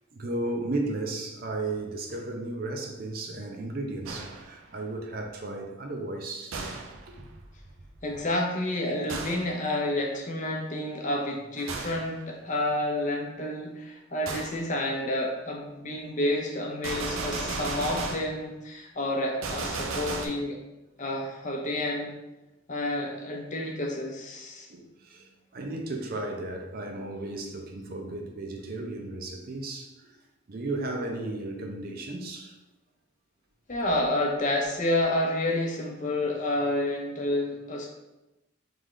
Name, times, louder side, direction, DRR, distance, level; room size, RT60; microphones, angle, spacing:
voice 1, 0.1-6.7 7.1-7.3 11.6-11.7 24.7-30.2 30.5-32.5, right 2 dB, 45° right, 0.6 m, -34 dB
Gunshot gunfire, 4.1-4.6 6.5-7.0 9.1-9.6 11.7-12.1 14.3-14.6 16.8-18.4 19.4-20.3, right 3 dB, 90° right, 0.6 m, -34 dB
voice 2, 8.0-20.6 21.0-22.1 22.7-24.7 33.7-37.9, left 1 dB, 35° left, 0.7 m, -29 dB
3.7 x 3.4 x 3.8 m
head